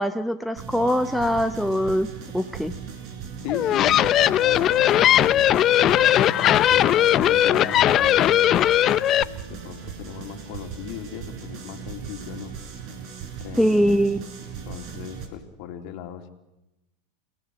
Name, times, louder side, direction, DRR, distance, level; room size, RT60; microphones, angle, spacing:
voice 1, 0.0-2.7 13.6-14.2, equal, ahead, 7 dB, 1.0 m, -22 dB
sound 1, 0.6-15.3, right 6 dB, 50° right, 5.0 m, -38 dB
voice 2, 3.4-8.9 9.5-12.6 13.4-14.0 14.7-16.3, left 10 dB, 55° left, 5 dB, 2.9 m, -37 dB
sound 2, 3.5-9.2, left 12 dB, 40° left, 0.7 m, -18 dB
29.5 x 17.5 x 6.3 m, 0.94 s
hypercardioid pair, 100°, 0 cm